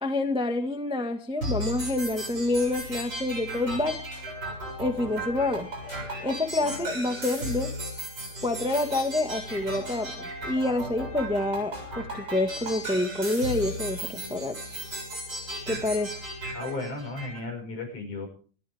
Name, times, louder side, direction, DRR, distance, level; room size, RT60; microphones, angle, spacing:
voice 1, 0.0-4.0 4.8-5.7 6.2-7.7 8.4-14.6 15.7-16.2, left 2 dB, 5° right, 5 dB, 1.0 m, -28 dB
sound 1, 1.4-17.4, equal, 30° right, 8.0 m, -36 dB
sound 2, 3.5-15.7, left 2 dB, 20° left, 8.2 m, -47 dB
voice 2, 16.5-18.3, left 3 dB, 75° left, 3 dB, 7.5 m, -34 dB
26.0 x 13.5 x 3.6 m, 0.40 s
omnidirectional pair, 3.5 m